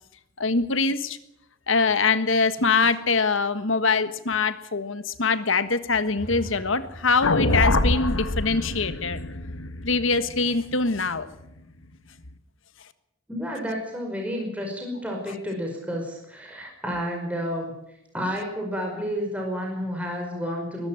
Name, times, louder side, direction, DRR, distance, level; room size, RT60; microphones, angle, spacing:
voice 1, 0.4-1.2 1.7-9.2 9.8-11.3, left 4 dB, 75° left, 12 dB, 1.5 m, -23 dB
sound 1, 6.1-10.0, equal, 40° left, 5.9 m, -43 dB
sound 2, 7.2-11.5, left 2 dB, 90° left, 1.6 m, -25 dB
voice 2, 13.3-17.7 18.1-20.9, equal, 5° right, 1 dB, 5.3 m, -30 dB
22.5 x 13.0 x 8.9 m, 0.83 s
head